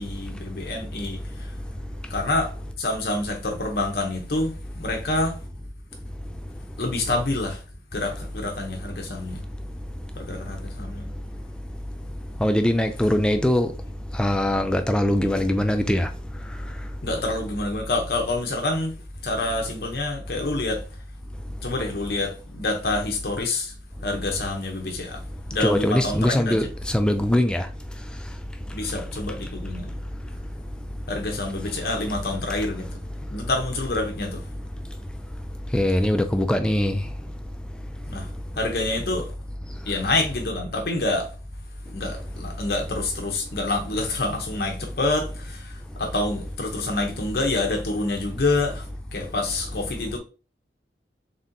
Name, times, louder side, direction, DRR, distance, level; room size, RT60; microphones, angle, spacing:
voice 1, 0.0-1.5 2.1-2.5 2.8-5.4 6.8-7.6 7.9-9.4 10.2-11.1 17.0-18.9 19.2-20.9 21.6-23.7 24.0-25.2 25.5-26.7 28.7-29.9 31.1-32.9 33.3-34.4 38.1-38.3 38.6-39.3 39.9-41.3 41.9-45.7 46.0-48.9 49.1-50.2, left 2 dB, 60° left, 0.7 m, -27 dB
voice 2, 12.4-13.7 14.2-16.1 25.6-27.7 35.7-37.0, left 1 dB, 5° left, 0.3 m, -21 dB
4.1 x 3.6 x 2.6 m
head